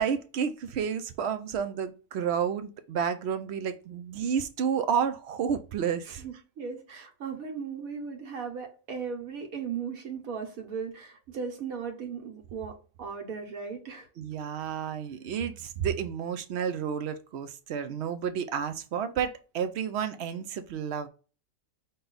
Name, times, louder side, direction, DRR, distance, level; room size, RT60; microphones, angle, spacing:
voice 1, 0.0-6.2 14.2-21.1, right 7 dB, 65° right, 0.7 m, -31 dB
voice 2, 6.0-14.1, right 6 dB, 85° right, 1.4 m, -37 dB
5.3 x 2.3 x 3.9 m
omnidirectional pair, 1.4 m